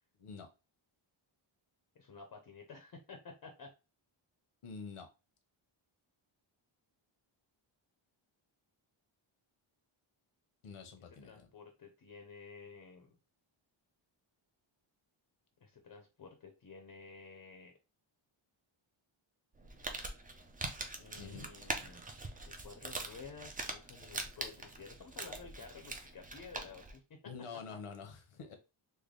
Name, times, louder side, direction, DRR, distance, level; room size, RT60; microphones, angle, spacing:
voice 1, 2.0-3.7 11.2-13.2 15.6-17.7 21.0-22.0 22.3-27.0, left 5 dB, 45° left, 4 dB, 0.6 m, -52 dB
voice 2, 4.6-5.1 10.6-11.5 21.2-21.5 27.2-28.6, left 5 dB, 80° left, 6 dB, 0.9 m, -47 dB
Crumpling crinkling, 19.5-27.0, right 2 dB, 20° right, 0.4 m, -43 dB
3.3 x 2.1 x 3.7 m, 0.30 s
wide cardioid pair, 145°, 50 cm